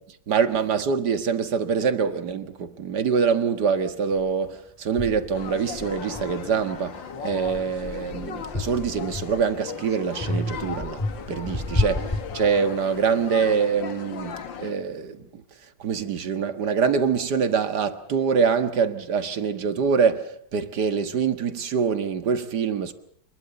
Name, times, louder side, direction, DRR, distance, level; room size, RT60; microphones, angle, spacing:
voice 1, 0.3-11.0 11.3-12.1 12.3-15.4 15.8-22.9, right 6 dB, 65° right, 2.1 m, -24 dB
sound 1, 4.2-4.3 5.0-6.8 7.3-9.6 10.2-13.0, left 1 dB, 10° left, 2.9 m, -31 dB
sound 2, 5.3-14.7, left 7 dB, 85° left, 2.2 m, -37 dB
26.5 x 21.5 x 6.9 m
omnidirectional pair, 2.0 m